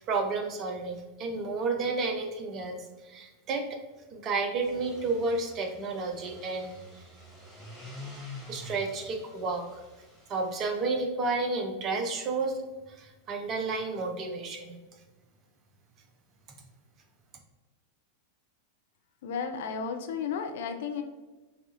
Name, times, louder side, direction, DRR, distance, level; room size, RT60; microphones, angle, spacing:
voice 1, 0.0-3.8 4.1-6.8 8.5-9.8 10.3-12.6 12.9-14.8, right 3 dB, 30° right, 4 dB, 0.6 m, -31 dB
sound 1, 4.6-10.8, left 2 dB, 15° right, 1.1 m, -47 dB
voice 2, 19.2-21.0, left 6 dB, 55° left, 6 dB, 0.4 m, -33 dB
5.6 x 2.4 x 2.6 m, 1.2 s
figure-of-eight pair, 90°, 0 cm